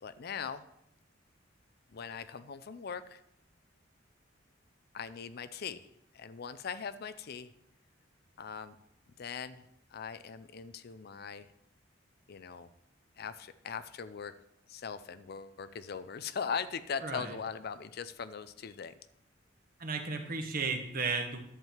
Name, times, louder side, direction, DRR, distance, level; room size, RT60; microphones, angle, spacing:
voice 1, 0.0-0.6 1.9-3.2 4.9-5.8 6.1-7.5 8.4-8.8 9.2-9.6 9.9-11.5 12.3-12.7 13.2-14.3 14.7-18.9, left 6 dB, 55° left, 13 dB, 0.5 m, -40 dB
voice 2, 17.0-17.4 19.8-21.4, right 4 dB, 50° right, 5 dB, 1.3 m, -34 dB
11.0 x 7.5 x 4.5 m, 0.78 s
head